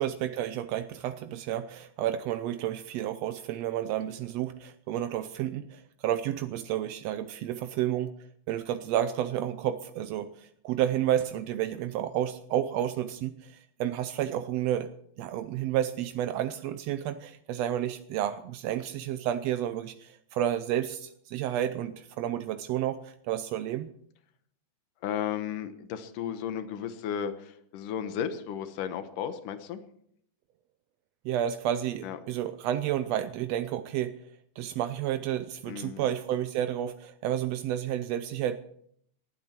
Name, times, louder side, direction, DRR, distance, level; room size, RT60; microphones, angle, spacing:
voice 1, 0.0-8.1 8.5-14.9 15.2-23.9 31.2-34.1 34.6-38.6, right 11 dB, 80° right, 10 dB, 1.5 m, -31 dB
voice 2, 25.0-29.8 32.0-32.2 35.7-36.0, left 9 dB, 85° left, 9 dB, 2.7 m, -34 dB
20.0 x 12.0 x 4.4 m, 0.67 s
omnidirectional pair, 3.6 m